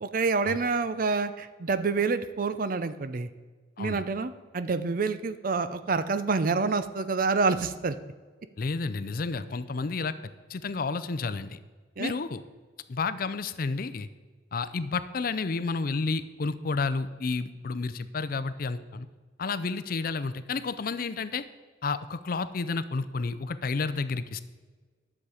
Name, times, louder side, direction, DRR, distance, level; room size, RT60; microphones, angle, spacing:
voice 1, 0.0-3.3 3.8-8.0 12.0-12.1, right 4 dB, 45° right, 12 dB, 0.5 m, -27 dB
voice 2, 8.6-10.1 10.5-11.6 12.0-12.4 12.9-14.1 14.5-19.1 19.4-21.4 21.8-24.4, left 4 dB, 50° left, 14 dB, 0.5 m, -31 dB
10.5 x 7.2 x 4.9 m, 1.4 s
head